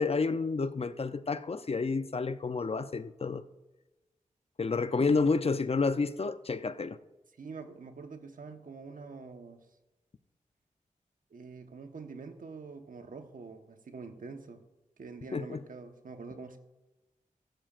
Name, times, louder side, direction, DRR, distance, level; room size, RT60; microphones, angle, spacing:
voice 1, 0.0-3.4 4.6-7.0 15.3-15.6, left 4 dB, 45° left, 12 dB, 0.6 m, -30 dB
voice 2, 7.4-9.6 11.3-14.6 15.0-16.6, right 4 dB, 70° right, 6 dB, 1.2 m, -45 dB
14.5 x 14.0 x 2.5 m, 1.1 s
cardioid pair, 60°, 14 cm